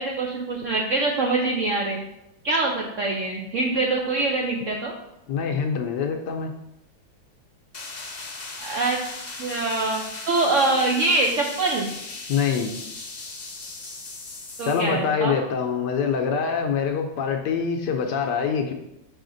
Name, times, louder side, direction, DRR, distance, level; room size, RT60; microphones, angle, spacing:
voice 1, 0.0-2.0 2.4-4.9 8.6-9.0 9.4-11.9 14.6-15.4, right 2 dB, 70° right, 0 dB, 0.7 m, -24 dB
voice 2, 5.3-6.5 12.3-12.7 14.6-18.7, left 6 dB, 70° left, 4 dB, 1.1 m, -25 dB
sound 1, 7.7-14.9, left 3 dB, 50° left, 0.5 m, -37 dB
5.7 x 4.9 x 3.8 m, 0.86 s
omnidirectional pair, 2.1 m